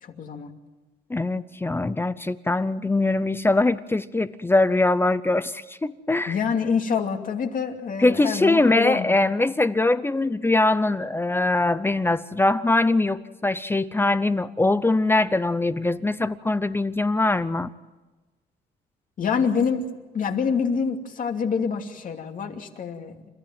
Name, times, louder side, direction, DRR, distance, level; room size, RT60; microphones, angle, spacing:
voice 1, 0.0-0.5 6.3-9.2 19.2-19.9 20.1-23.2, left 6 dB, 45° left, 4 dB, 2.7 m, -26 dB
voice 2, 1.1-6.3 8.0-17.7, left 2 dB, 10° left, 14 dB, 0.7 m, -22 dB
29.5 x 14.0 x 9.3 m, 1.2 s
cardioid pair, 120°, 19 cm